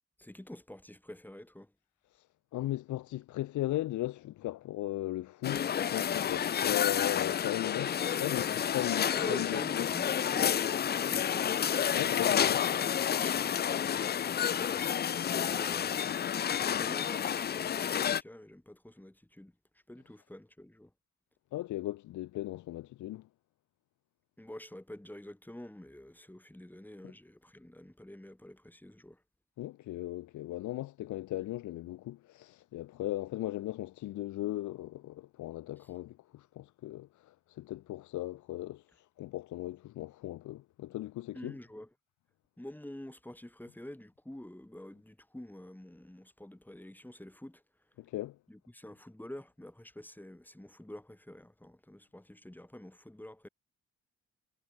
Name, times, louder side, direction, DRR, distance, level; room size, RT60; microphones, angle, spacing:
voice 1, 0.2-1.7 9.1-11.6 13.2-16.1 16.5-19.5 19.9-20.9 24.4-29.2 35.8-35.9 41.3-41.9 42.6-47.6 48.5-53.5, left 1 dB, 5° left, 4.4 m, -48 dB
voice 2, 2.5-9.8 10.4-10.6 11.9-12.7 21.5-23.3 29.6-41.5 48.0-48.4, left 15 dB, 75° left, 0.8 m, -37 dB
sound 1, 5.4-18.2, left 9 dB, 35° left, 0.5 m, -30 dB
cardioid pair, 90°, 30 cm